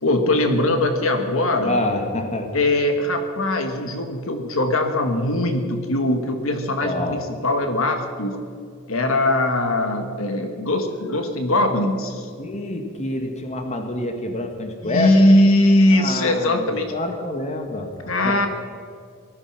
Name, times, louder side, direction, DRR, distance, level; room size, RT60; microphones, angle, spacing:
voice 1, 0.0-1.8 2.5-8.4 8.9-12.3 14.8-16.9 18.1-18.5, left 1 dB, 70° left, 6 dB, 1.6 m, -20 dB
voice 2, 1.6-2.5 6.8-7.2 12.4-15.2 15.9-18.5, left 1 dB, 35° left, 5 dB, 1.6 m, -27 dB
18.5 x 13.0 x 6.0 m, 2.2 s
head